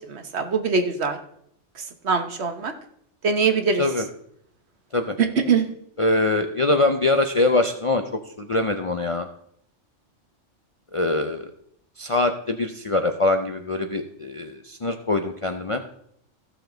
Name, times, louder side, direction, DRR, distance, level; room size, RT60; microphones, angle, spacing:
voice 1, 0.1-1.2 2.0-2.7 3.2-3.8 5.2-5.7, right 5 dB, 60° right, 7 dB, 1.3 m, -22 dB
voice 2, 6.0-9.3 10.9-11.4 12.0-15.8, left 2 dB, 40° left, 6 dB, 0.5 m, -23 dB
15.0 x 6.8 x 3.9 m, 0.70 s
omnidirectional pair, 1.3 m